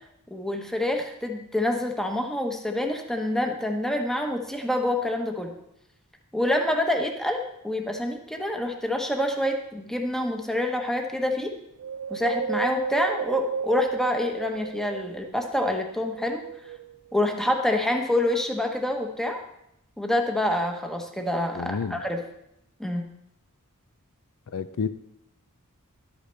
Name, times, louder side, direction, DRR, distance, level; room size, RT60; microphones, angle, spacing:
voice 1, 0.3-5.5 6.3-11.5 12.1-16.4 17.1-19.4 20.0-22.2 22.8-23.0, left 1 dB, ahead, 3 dB, 1.0 m, -27 dB
Wind, 11.8-15.4 15.9-17.1 17.7-17.8, right 6 dB, 90° right, 0.4 m, -33 dB
voice 2, 21.5-22.0 24.5-24.9, left 5 dB, 70° left, 12 dB, 0.5 m, -29 dB
11.5 x 8.3 x 3.4 m, 0.80 s
head